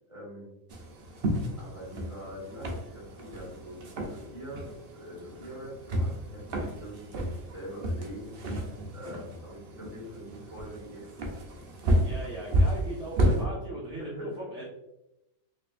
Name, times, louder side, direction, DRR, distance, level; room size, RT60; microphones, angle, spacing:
voice 1, 0.1-0.5 1.6-8.4 8.9-11.2 13.1-13.5 13.9-14.6, equal, 20° right, -6 dB, 1.6 m, -43 dB
sound 1, 0.7-13.4, equal, 55° right, 0.6 m, -31 dB
voice 2, 12.0-14.6, right 1 dB, 5° right, -7 dB, 0.5 m, -38 dB
4.3 x 2.8 x 2.5 m, 0.90 s
omnidirectional pair, 1.5 m